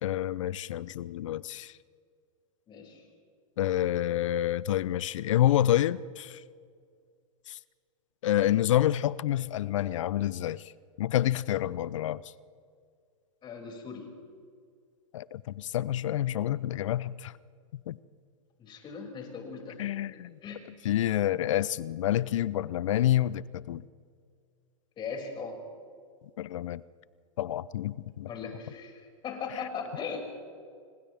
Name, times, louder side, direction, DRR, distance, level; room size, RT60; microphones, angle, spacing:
voice 1, 0.0-1.7 3.6-6.4 7.5-7.6 8.2-10.6 11.0-12.2 15.1-17.3 17.7-18.0 19.8-20.3 20.8-23.8 26.4-26.8 27.4-28.3 29.5-29.6, left 12 dB, 65° left, 20 dB, 0.7 m, -28 dB
voice 2, 2.7-3.0 13.4-14.1 18.6-19.8 20.4-20.6 25.0-25.6 28.2-30.3, left 5 dB, 25° left, 1 dB, 6.3 m, -39 dB
29.5 x 26.0 x 3.6 m, 2.1 s
hypercardioid pair, 115°, 17 cm